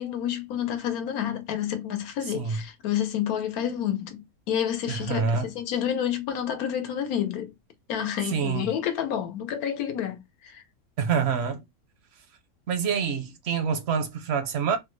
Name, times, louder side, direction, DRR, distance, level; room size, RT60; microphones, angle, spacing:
voice 1, 0.0-7.5 7.9-10.6, left 9 dB, 75° left, 1.2 m, -29 dB
voice 2, 4.9-5.5 8.3-8.7 11.0-11.6 12.7-14.8, right 6 dB, 60° right, 0.7 m, -26 dB
3.5 x 2.2 x 3.0 m
omnidirectional pair, 1.6 m